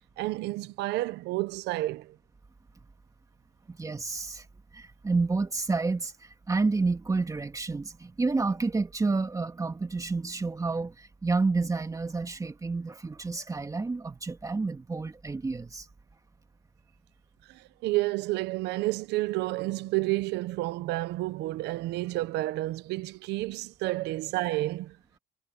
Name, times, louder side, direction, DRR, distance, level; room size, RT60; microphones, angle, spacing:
voice 1, 0.2-2.1 17.8-24.9, right 18 dB, 85° right, 1.0 m, -30 dB
voice 2, 3.7-4.5 4.7-15.9, right 3 dB, 20° right, 2.3 m, -29 dB
cardioid pair, 110°, 17 cm